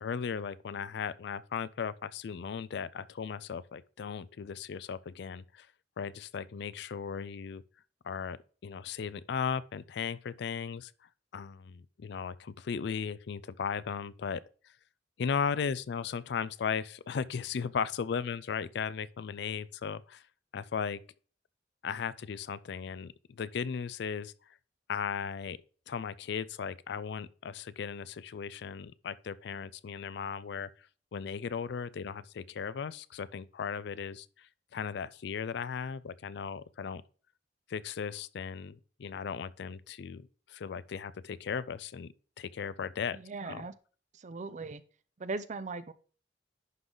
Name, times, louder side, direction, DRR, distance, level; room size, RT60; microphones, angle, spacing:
voice 1, 0.0-5.7 6.0-7.6 8.0-10.9 11.3-14.4 15.2-20.2 20.5-21.0 21.8-24.3 24.9-25.6 25.9-30.7 31.1-37.0 37.7-43.2 43.4-43.7, left 6 dB, 65° left, 0.4 m, -36 dB
voice 2, 43.1-43.7 44.1-44.8 45.2-45.9, right 3 dB, 45° right, 0.5 m, -39 dB
11.0 x 3.9 x 3.8 m
head